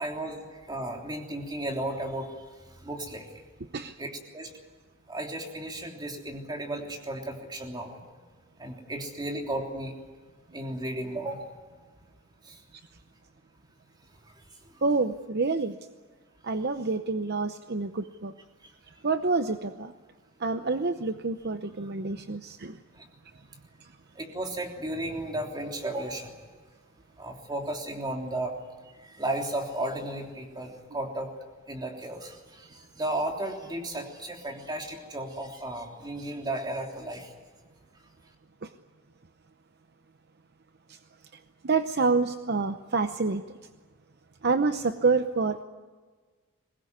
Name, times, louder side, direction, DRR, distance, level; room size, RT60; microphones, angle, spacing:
voice 1, 0.0-3.3 4.0-4.5 5.1-8.0 8.6-9.9 10.5-11.6 12.4-12.6 14.2-14.3 14.7-14.8 18.6-18.7 22.9-23.0 24.1-26.3 27.2-28.6 29.0-31.3 31.7-37.3, right 1 dB, 20° right, 2 dB, 3.3 m, -34 dB
voice 2, 14.8-15.7 16.4-18.3 19.0-19.9 20.4-22.7 41.6-43.4 44.4-45.6, right 4 dB, 50° right, 9 dB, 0.8 m, -27 dB
22.5 x 20.0 x 9.6 m, 1.4 s
head